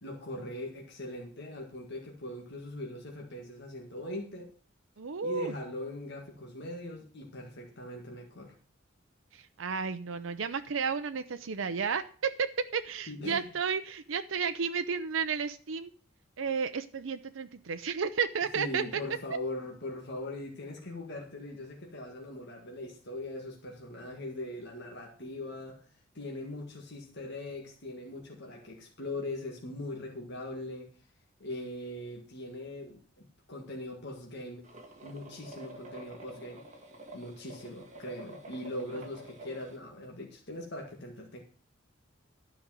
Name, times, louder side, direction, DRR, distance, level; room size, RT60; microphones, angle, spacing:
voice 1, 0.0-4.5 5.2-8.6 13.1-13.5 18.6-25.8 26.1-30.9 31.4-34.7 35.0-36.6 37.1-41.4, left 1 dB, 55° left, 0 dB, 1.9 m, -41 dB
voice 2, 5.0-5.5 9.3-15.9 16.4-19.0, right 6 dB, 80° right, 9 dB, 0.6 m, -32 dB
sound 1, 34.6-39.8, right 1 dB, 35° right, 1.9 m, -48 dB
12.5 x 5.2 x 7.5 m, 0.42 s
head